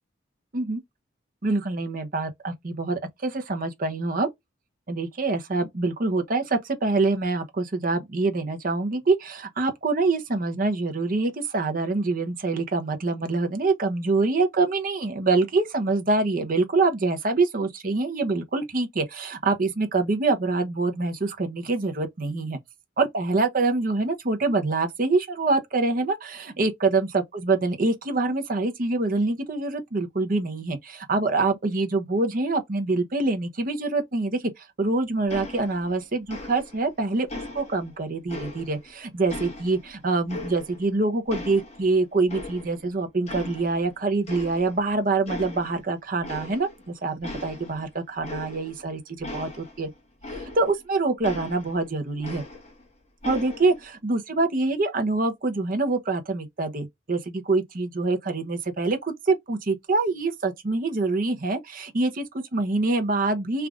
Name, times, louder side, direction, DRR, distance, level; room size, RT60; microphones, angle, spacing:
voice 1, 1.4-4.3 4.9-22.6 23.0-37.3 37.5-46.7 47.0-49.9 50.3-52.4 53.2-63.7, right 3 dB, 45° right, 0.7 m, -25 dB
sound 1, 35.3-36.0 36.3-36.9 37.3-38.9 39.3-40.9 41.3-42.9 43.3-43.9 44.3-44.9 45.3-45.8 46.2-46.9 47.2-50.8 51.2-52.9 53.2-53.8, left 2 dB, 35° left, 1.3 m, -39 dB
3.3 x 2.5 x 3.5 m
head